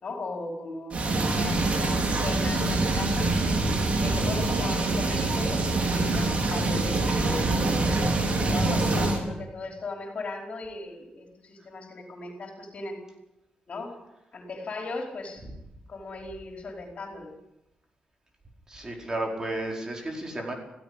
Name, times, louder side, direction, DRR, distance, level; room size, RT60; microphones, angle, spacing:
voice 1, 0.0-3.3 4.0-7.9 8.5-13.0 13.7-14.0 14.3-15.4 15.9-17.3, left 3 dB, 55° left, 2 dB, 4.9 m, -37 dB
sound 1, 0.9-9.2, right 2 dB, 50° right, 4.5 m, -25 dB
voice 2, 18.7-20.5, right 1 dB, 25° right, 1 dB, 4.9 m, -33 dB
16.5 x 16.5 x 10.0 m, 0.91 s
cardioid pair, 100°, 3 cm